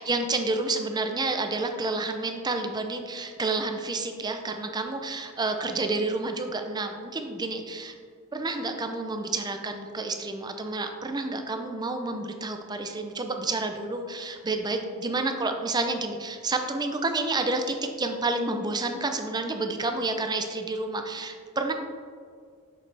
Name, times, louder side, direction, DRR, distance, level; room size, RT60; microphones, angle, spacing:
voice 1, 0.0-7.9 8.3-21.7, right 3 dB, 20° right, 6 dB, 0.5 m, -29 dB
6.7 x 5.3 x 3.3 m, 2.1 s
head